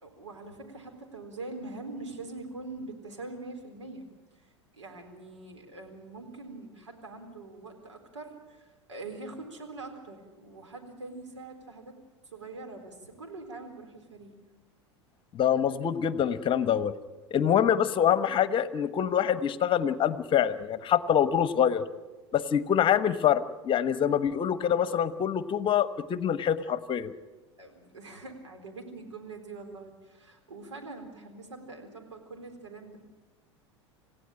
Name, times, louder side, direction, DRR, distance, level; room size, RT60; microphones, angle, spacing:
voice 1, 0.0-4.0 4.3-12.0 12.3-14.3 27.6-33.0, right 3 dB, 80° right, 4 dB, 4.1 m, -43 dB
voice 2, 15.3-16.9 17.3-21.8 22.3-27.1, left 9 dB, 35° left, 14 dB, 1.1 m, -25 dB
28.0 x 16.0 x 8.8 m, 1.2 s
figure-of-eight pair, 80°, 15 cm